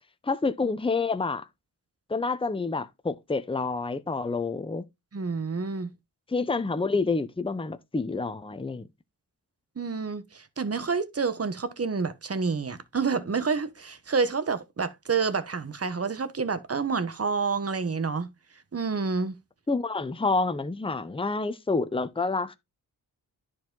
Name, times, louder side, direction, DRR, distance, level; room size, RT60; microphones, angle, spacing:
voice 1, 0.2-1.5 2.1-4.8 6.3-8.9 19.7-22.6, left 3 dB, 15° left, 0.8 m, -28 dB
voice 2, 5.1-5.9 9.8-18.3 18.7-19.4, right 5 dB, 40° right, 1.2 m, -28 dB
10.5 x 4.8 x 3.9 m
cardioid pair, 65°, 38 cm